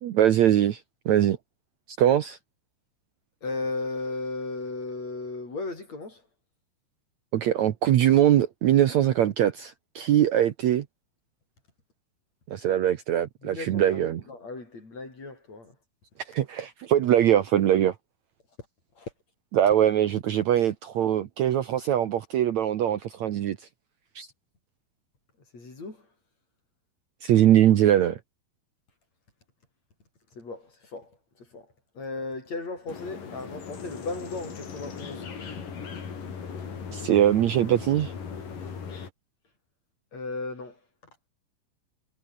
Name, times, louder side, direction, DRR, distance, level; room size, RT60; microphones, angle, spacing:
voice 1, 0.0-1.4 2.0-2.4 7.3-10.9 12.5-14.2 16.3-18.0 19.5-23.6 24.2-24.3 27.2-28.2 36.9-38.1, right 11 dB, 65° right, 2.1 m, -22 dB
voice 2, 3.4-6.2 13.4-15.8 19.0-19.1 25.5-26.1 30.3-31.7 31.9-35.3 40.1-40.8, left 3 dB, 45° left, 8.4 m, -36 dB
sound 1, 32.9-39.1, left 6 dB, 65° left, 5.6 m, -38 dB
omnidirectional pair, 4.1 m